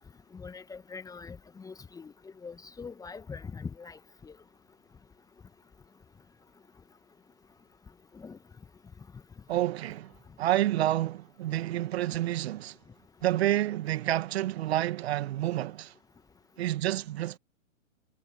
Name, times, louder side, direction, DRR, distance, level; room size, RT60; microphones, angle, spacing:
voice 1, 0.3-2.1 2.4-4.3 8.1-8.4, left 5 dB, 10° left, 1.4 m, -43 dB
voice 2, 9.5-10.1 10.4-12.8 13.2-15.9 16.6-17.4, right 14 dB, 50° right, 2.0 m, -29 dB
figure-of-eight pair, 120°, 40 cm